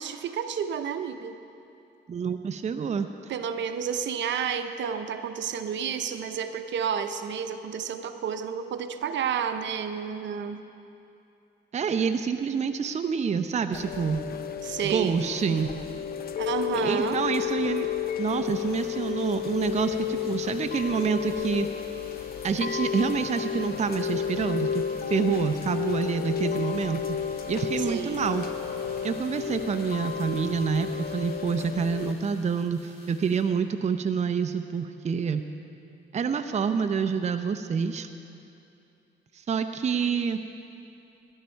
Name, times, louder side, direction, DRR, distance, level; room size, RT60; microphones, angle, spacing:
voice 1, 0.0-1.4 3.3-10.6 14.6-15.2 16.4-17.2 27.8-28.3, right 7 dB, 65° right, 8 dB, 0.8 m, -30 dB
voice 2, 2.1-3.3 11.7-14.2 14.8-15.7 16.8-17.9 18.2-21.7 22.4-27.2 27.5-28.5 29.0-35.4 36.1-38.1 39.3-40.4, right 6 dB, 35° right, 8 dB, 0.6 m, -27 dB
Chime / Rain, 13.7-32.1, left 8 dB, 50° left, 0.7 m, -32 dB
sound 1, 18.2-33.4, equal, 30° left, 3.7 m, -52 dB
18.0 x 11.5 x 4.5 m, 2.7 s
cardioid pair, 90°, 20 cm